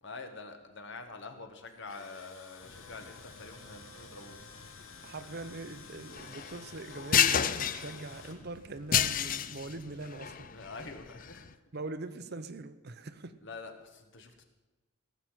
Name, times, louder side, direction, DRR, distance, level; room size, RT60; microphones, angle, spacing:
voice 1, 0.0-4.4 5.2-5.5 10.2-11.5 13.4-14.4, left 3 dB, 60° left, 1.8 m, -46 dB
Tools, 1.7-8.4, left 5 dB, 80° left, 1.8 m, -52 dB
sound 1, 2.7-11.5, left 8 dB, 40° left, 0.5 m, -32 dB
voice 2, 5.0-10.5 11.7-13.4, right 2 dB, 50° right, 0.8 m, -42 dB
17.0 x 6.7 x 9.0 m
head